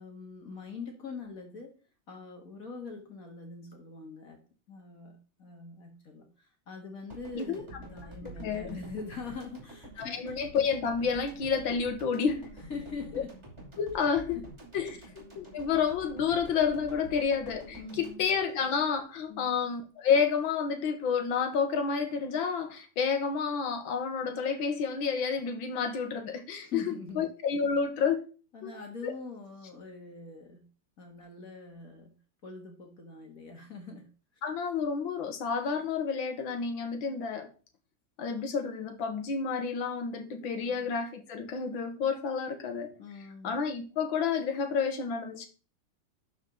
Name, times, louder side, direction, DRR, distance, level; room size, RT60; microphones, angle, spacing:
voice 1, 0.0-1.8 2.1-4.4 4.7-10.3 12.7-13.4 14.3-14.5 14.9-15.0 17.8-18.3 19.3-19.6 26.6-27.3 28.5-30.7 31.0-32.2 32.4-34.1 40.4-40.9 43.0-43.6, left 4 dB, 45° left, 2.0 m, -43 dB
sound 1, 7.1-19.3, right 1 dB, 15° right, 2.6 m, -48 dB
voice 2, 8.2-8.8 10.0-12.5 13.8-14.4 14.7-28.2 28.6-28.7 29.0-29.1 34.4-37.5 38.2-42.9 43.4-45.5, left 6 dB, 70° left, 1.9 m, -30 dB
11.5 x 4.7 x 3.8 m
omnidirectional pair, 2.2 m